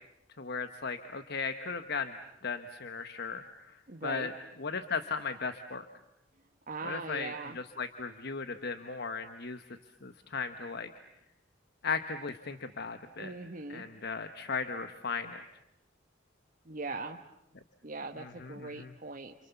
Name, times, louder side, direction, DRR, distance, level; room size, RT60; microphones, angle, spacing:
voice 1, 0.4-2.1 2.4-4.3 4.6-5.9 6.8-9.6 10.0-10.9 11.8-13.4 13.7-15.4 18.2-18.9, left 5 dB, 60° left, 9 dB, 1.1 m, -37 dB
voice 2, 3.9-4.3 6.7-7.6 13.2-13.8 16.6-17.2 17.8-19.3, right 3 dB, 45° right, 3 dB, 1.2 m, -40 dB
30.0 x 27.5 x 7.1 m, 0.86 s
head